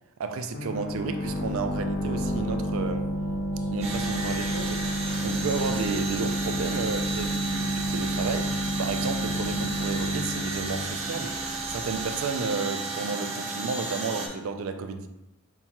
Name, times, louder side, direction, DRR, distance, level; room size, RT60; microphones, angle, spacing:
voice 1, 0.2-3.1 3.7-11.4 11.7-15.1, right 4 dB, 70° right, 0.4 m, -32 dB
sound 1, 0.5-12.0, equal, 40° left, 0.4 m, -31 dB
sound 2, 1.2-12.8, equal, 15° left, 0.7 m, -45 dB
sound 3, 3.8-14.3, right 3 dB, 30° right, 0.6 m, -33 dB
5.6 x 2.3 x 2.9 m
head